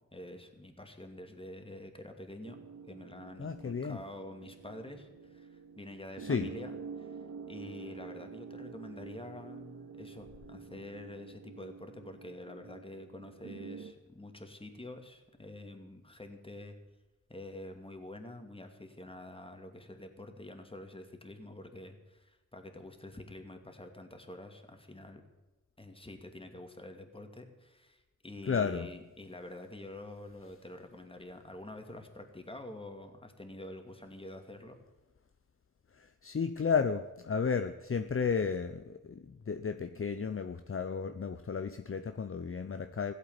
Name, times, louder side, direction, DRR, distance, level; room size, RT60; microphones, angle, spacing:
voice 1, 0.1-2.6 2.9-16.8 17.3-25.2 25.8-34.7, left 1 dB, 20° left, 5 dB, 2.5 m, -47 dB
sound 1, 2.4-13.9, right 5 dB, 70° right, 1.0 m, -48 dB
voice 2, 3.4-4.0 6.2-6.5 28.5-28.9 35.9-43.1, left 6 dB, 45° left, 9 dB, 0.8 m, -33 dB
16.0 x 8.3 x 9.5 m, 1.1 s
wide cardioid pair, 70°, 30 cm